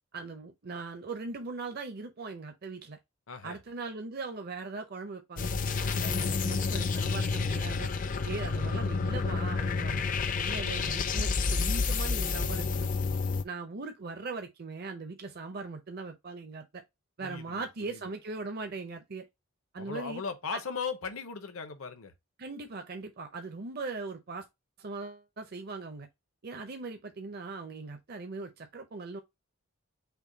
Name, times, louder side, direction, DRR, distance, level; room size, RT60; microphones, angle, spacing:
voice 1, 0.1-3.0 3.4-5.5 5.8-7.9 8.2-10.0 10.4-12.9 13.4-16.8 17.2-19.2 19.7-20.2 20.5-20.6 22.4-24.5 24.8-26.1 26.4-29.2, right 3 dB, 45° right, 0.6 m, -40 dB
voice 2, 3.3-3.6 17.2-18.0 19.8-22.1, left 5 dB, 70° left, 0.8 m, -38 dB
sound 1, 5.4-13.4, left 4 dB, 35° left, 0.4 m, -30 dB
5.8 x 2.2 x 3.9 m
head